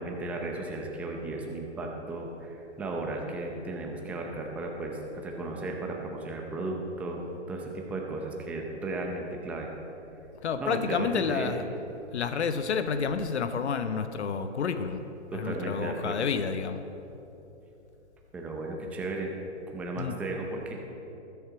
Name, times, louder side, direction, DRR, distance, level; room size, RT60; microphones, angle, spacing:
voice 1, 0.0-9.7 10.6-11.5 15.3-16.2 18.3-19.3 19.7-20.7, right 2 dB, 5° right, 1 dB, 0.5 m, -35 dB
voice 2, 10.4-11.6 12.1-15.0 15.3-16.8 20.0-20.1, left 6 dB, 70° left, 9 dB, 0.9 m, -29 dB
20.0 x 7.0 x 4.7 m, 3.0 s
hypercardioid pair, 145°, 35 cm